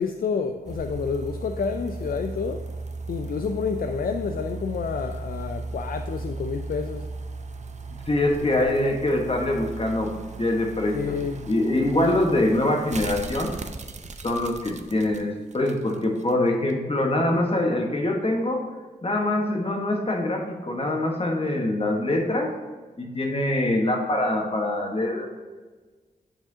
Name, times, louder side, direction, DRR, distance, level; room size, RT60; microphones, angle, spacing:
voice 1, 0.0-2.6 3.1-7.1 8.4-8.9 10.9-11.5 12.0-12.2, left 5 dB, 60° left, 7 dB, 0.4 m, -29 dB
sound 1, 0.6-16.3 16.7-16.8, right 3 dB, 45° right, 0.6 m, -36 dB
voice 2, 8.1-11.2 11.5-13.5 14.2-18.6 19.0-22.5 23.0-25.3, left 1 dB, 35° left, 1 dB, 1.4 m, -24 dB
9.0 x 4.9 x 2.8 m, 1.3 s
cardioid pair, 60°, 17 cm